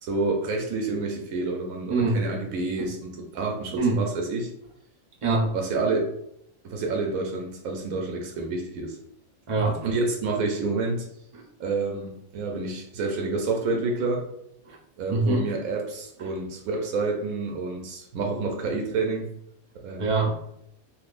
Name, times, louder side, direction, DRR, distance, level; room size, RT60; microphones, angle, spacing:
voice 1, 0.0-4.5 5.5-6.1 6.6-9.0 9.8-11.1 11.6-14.3 15.0-19.3 19.8-20.1, right 3 dB, 85° right, 1 dB, 1.0 m, -28 dB
voice 2, 1.9-2.2 2.8-2.9 3.7-4.0 5.2-5.5 9.5-9.8 11.3-11.4 14.6-14.8 15.1-15.4 20.0-20.4, right 3 dB, 50° right, -1 dB, 0.4 m, -24 dB
3.5 x 2.6 x 2.4 m, 0.74 s
omnidirectional pair, 1.4 m